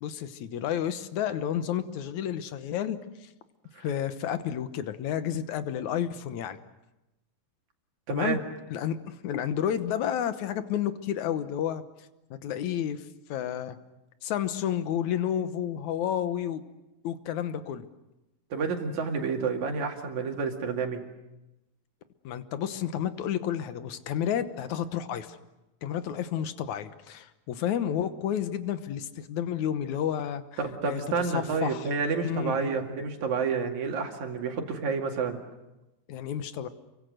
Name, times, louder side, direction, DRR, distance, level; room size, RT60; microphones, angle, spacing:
voice 1, 0.0-3.3 3.8-6.6 8.1-8.4 8.7-11.8 12.3-13.8 14.2-16.6 17.0-17.9 22.2-25.4 25.8-31.9 32.2-32.9 36.1-36.7, left 9 dB, 70° left, 11 dB, 2.4 m, -31 dB
voice 2, 8.1-8.4 18.5-21.0 30.6-35.4, right 5 dB, 65° right, 3 dB, 3.6 m, -29 dB
28.5 x 24.0 x 6.5 m, 0.99 s
omnidirectional pair, 3.6 m